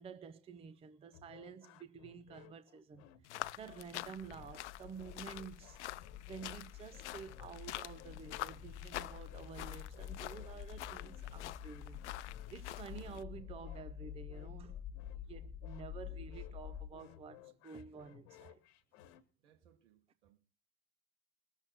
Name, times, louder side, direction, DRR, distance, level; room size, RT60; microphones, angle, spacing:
voice 1, 0.0-5.8 6.3-14.8 15.3-18.6, right 6 dB, 15° right, 0.6 m, -51 dB
sound 1, 1.1-19.2, left 12 dB, 55° left, 1.7 m, -60 dB
sound 2, 3.2-13.2, left 15 dB, 75° left, 0.6 m, -47 dB
sound 3, 3.4-16.9, left 10 dB, 25° left, 0.8 m, -49 dB
voice 2, 19.4-20.4, right 10 dB, 70° right, 3.0 m, -70 dB
20.0 x 7.3 x 6.6 m
hypercardioid pair, 110°, 36 cm